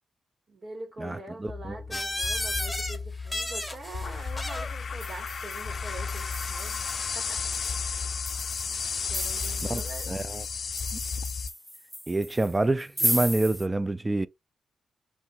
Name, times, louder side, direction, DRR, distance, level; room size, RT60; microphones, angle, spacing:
voice 1, 0.5-6.9 7.1-7.4 9.1-10.2, right 2 dB, 60° right, 2.2 m, -43 dB
voice 2, 1.0-1.8 9.7-9.8 10.1-10.4 12.1-14.3, right 2 dB, 25° right, 0.4 m, -27 dB
sound 1, 1.5-11.5, left 5 dB, 60° left, 0.4 m, -33 dB
sound 2, 1.9-3.0 3.2-4.7 5.8-7.3, left 1 dB, 15° left, 1.2 m, -35 dB
sound 3, 4.3-4.6 5.0-13.7, equal, 5° right, 0.9 m, -36 dB
3.1 x 2.7 x 4.2 m
cardioid pair, 60°, 0 cm